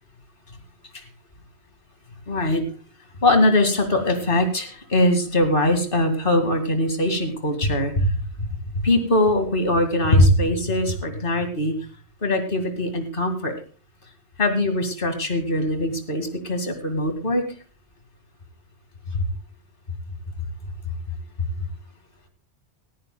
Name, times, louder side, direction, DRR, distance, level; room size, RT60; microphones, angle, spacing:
voice 1, 2.3-2.6 3.2-8.1 8.4-8.5 8.8-11.7 12.2-13.5 14.4-17.4 19.1-19.3, left 1 dB, 50° left, 6 dB, 2.4 m, -21 dB
18.5 x 14.5 x 2.3 m, 0.36 s
omnidirectional pair, 1.1 m